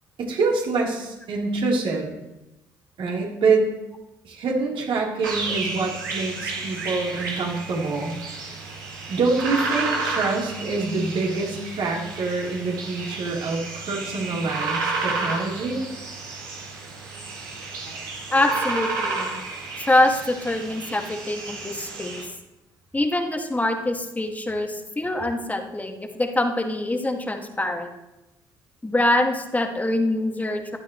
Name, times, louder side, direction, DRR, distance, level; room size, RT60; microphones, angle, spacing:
voice 1, 0.2-2.1 3.0-3.7 4.2-8.1 9.1-15.9, right 3 dB, 55° right, -3 dB, 3.8 m, -25 dB
sound 1, 5.2-22.3, right 3 dB, 80° right, 2.1 m, -31 dB
voice 2, 18.3-19.3 19.8-22.2 22.9-27.9 28.8-30.8, left 1 dB, 15° left, 3 dB, 2.1 m, -24 dB
15.5 x 12.0 x 3.2 m, 0.98 s
figure-of-eight pair, 50°, 11 cm